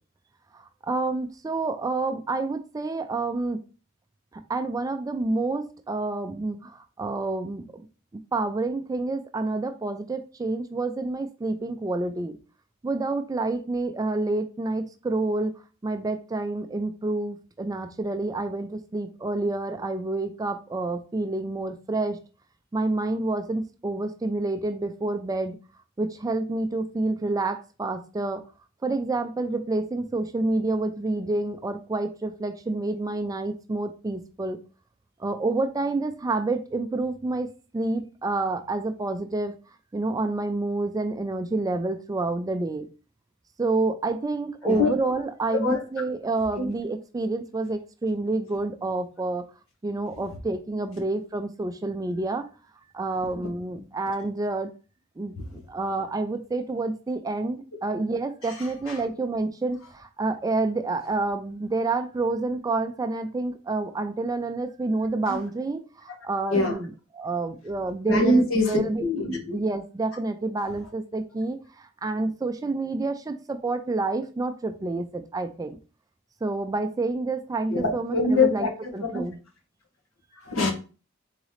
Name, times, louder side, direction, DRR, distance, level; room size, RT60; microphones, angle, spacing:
voice 1, 0.6-3.6 4.5-7.8 8.1-12.4 12.8-22.2 22.7-25.6 26.0-28.4 28.8-34.6 35.2-39.5 39.9-42.9 43.6-49.5 49.8-52.5 52.9-54.7 55.2-55.4 55.7-69.0 69.5-75.8 76.4-79.4, right 2 dB, 20° right, 0.3 m, -28 dB
voice 2, 68.1-69.4 77.7-78.7 80.5-80.7, left 2 dB, 80° left, 1.3 m, -23 dB
4.0 x 3.7 x 3.1 m
head